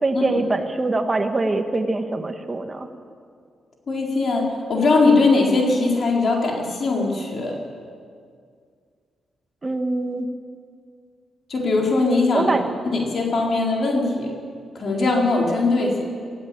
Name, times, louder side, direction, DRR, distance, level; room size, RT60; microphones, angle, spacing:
voice 1, 0.0-2.9 9.6-10.3 12.3-12.6, right 2 dB, 30° right, 7 dB, 1.8 m, -23 dB
voice 2, 3.9-7.6 11.5-12.5 12.9-14.3 14.7-16.0, left 3 dB, 55° left, 0 dB, 4.5 m, -20 dB
20.0 x 16.5 x 8.7 m, 2.2 s
cardioid pair, 70°, 0 cm